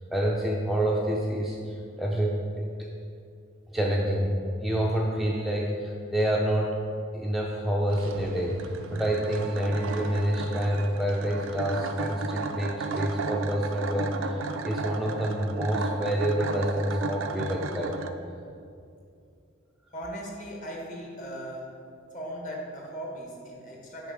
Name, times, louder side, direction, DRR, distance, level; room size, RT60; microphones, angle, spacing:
voice 1, 0.0-2.9 3.7-4.3 4.6-6.8 7.1-18.0, right 1 dB, ahead, -3 dB, 0.4 m, -28 dB
sound 1, 7.9-18.1, right 3 dB, 85° right, 0.4 m, -34 dB
voice 2, 19.9-21.7 22.1-24.1, equal, 40° left, -1 dB, 1.4 m, -38 dB
6.5 x 5.2 x 5.0 m, 2.4 s
head